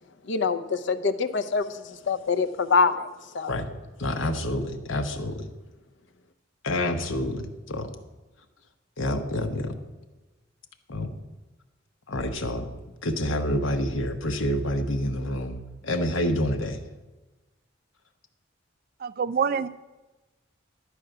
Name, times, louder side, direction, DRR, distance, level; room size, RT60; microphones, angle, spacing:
voice 1, 0.2-3.1 3.3-3.6, left 5 dB, 65° left, 11 dB, 0.6 m, -25 dB
voice 2, 4.0-5.5 6.6-7.9 9.0-9.7 10.9-11.1 12.1-12.7 13.0-15.6 15.8-16.8, left 1 dB, 80° left, 7 dB, 1.0 m, -28 dB
voice 3, 19.0-19.7, right 6 dB, 45° right, 15 dB, 0.3 m, -26 dB
11.5 x 4.9 x 7.8 m, 1.2 s
head